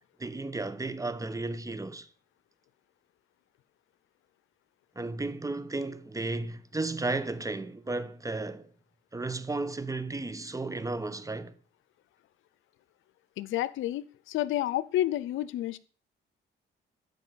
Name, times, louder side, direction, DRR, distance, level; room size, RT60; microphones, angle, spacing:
voice 1, 0.2-2.1 4.9-8.7 9.1-11.5, right 2 dB, 15° right, 1.1 m, -34 dB
voice 2, 13.4-15.8, left 13 dB, 85° left, 0.7 m, -30 dB
13.5 x 5.4 x 8.7 m
cardioid pair, 90°, 20 cm